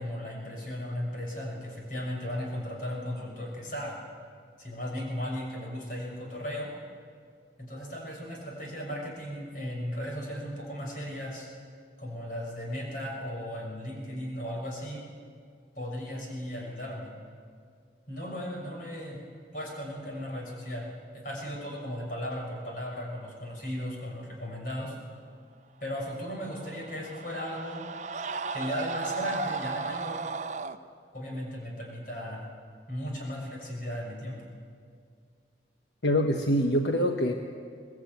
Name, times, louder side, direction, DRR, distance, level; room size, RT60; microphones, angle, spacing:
voice 1, 0.0-4.0 4.6-6.7 7.6-11.5 12.0-15.0 15.7-17.1 18.1-19.2 19.5-20.9 21.1-25.0 25.8-27.9 28.5-30.2 31.1-32.4 32.9-34.4, equal, 50° left, -1 dB, 6.3 m, -36 dB
Screaming, 26.3-30.8, right 4 dB, 40° right, 0.8 m, -35 dB
voice 2, 36.0-37.3, equal, 75° left, 4 dB, 1.2 m, -24 dB
23.0 x 19.0 x 9.4 m, 2.1 s
head